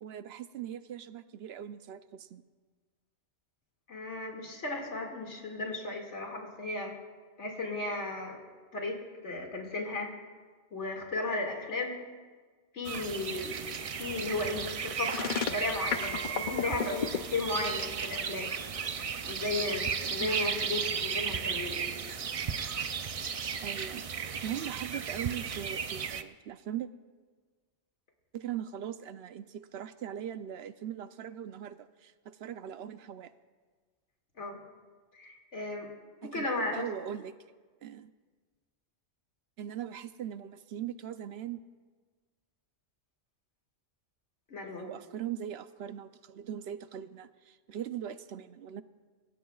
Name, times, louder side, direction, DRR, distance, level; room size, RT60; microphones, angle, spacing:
voice 1, 0.0-2.4 20.2-20.5 23.6-24.1 24.4-26.9 28.3-33.3 36.2-37.3 37.8-38.1 39.6-41.6 44.7-48.8, right 10 dB, 70° right, 12 dB, 0.8 m, -40 dB
voice 2, 3.9-6.9 7.4-8.4 8.7-10.1 10.7-12.0 12.7-13.6 13.9-18.5 19.2-21.9 34.4-34.6 35.1-35.9 36.2-36.8 44.5-44.9, left 2 dB, 85° left, 0 dB, 2.5 m, -35 dB
sound 1, 12.8-26.2, right 6 dB, 50° right, 0.4 m, -35 dB
sound 2, 15.0-17.2, left 7 dB, 50° left, 0.7 m, -31 dB
25.5 x 15.5 x 2.3 m, 1.5 s
omnidirectional pair, 1.2 m